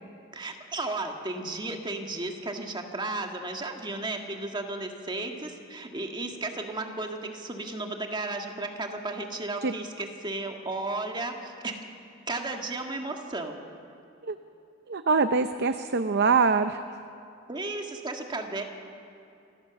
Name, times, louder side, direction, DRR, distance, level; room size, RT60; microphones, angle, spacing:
voice 1, 0.3-11.8 12.3-13.6 17.5-18.6, right 2 dB, 25° right, 3 dB, 1.8 m, -34 dB
voice 2, 14.9-16.8, right 4 dB, 60° right, 9 dB, 0.6 m, -24 dB
27.0 x 15.5 x 7.1 m, 2.6 s
head